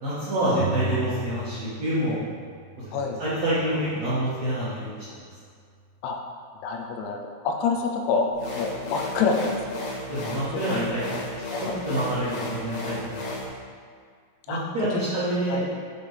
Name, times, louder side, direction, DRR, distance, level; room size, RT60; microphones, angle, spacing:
voice 1, 0.0-2.2 2.8-4.9 10.1-11.2 11.6-13.4 14.5-15.6, right 1 dB, 65° right, -12 dB, 1.8 m, -27 dB
sound 1, 0.6-2.1 2.4-4.1, right 2 dB, 85° right, 2.4 m, -35 dB
voice 2, 6.6-7.2 7.5-8.3 8.5-9.6 10.7-10.8 11.5-11.8 14.5-14.6 14.9-15.0 15.5-15.6, left 5 dB, 85° left, 2 dB, 3.0 m, -26 dB
sound 2, 8.3-13.5, left 2 dB, 65° left, 3.5 m, -34 dB
8.3 x 5.2 x 3.3 m, 2.1 s
omnidirectional pair, 5.3 m